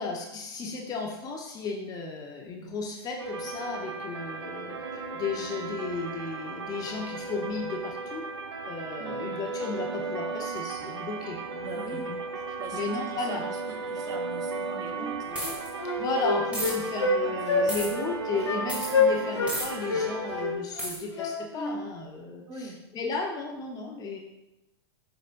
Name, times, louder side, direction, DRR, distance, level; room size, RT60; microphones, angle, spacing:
voice 1, 0.0-4.8 5.1-8.2 8.6-12.2 12.7-13.4 16.0-24.2, left 3 dB, 30° left, 1 dB, 0.9 m, -34 dB
sound 1, 3.2-20.5, right 4 dB, 80° right, 0.7 m, -36 dB
voice 2, 11.6-15.8 17.2-17.9 18.3-18.7 22.5-22.8, right 3 dB, 25° right, 3 dB, 1.1 m, -43 dB
Wind instrument woodwind instrument, 15.0-15.1 15.4-17.2 17.5-17.7 17.9-18.1 18.4-18.6 18.9-19.6 19.9-21.8, left 3 dB, 85° left, 1.1 m, -26 dB
sound 2, 15.3-15.7 16.5-16.7 17.7-17.9 18.7-18.9 19.5-19.7 20.8-21.0, right 1 dB, 10° right, 1.8 m, -32 dB
7.4 x 5.1 x 2.6 m, 0.95 s
hypercardioid pair, 105°, 14 cm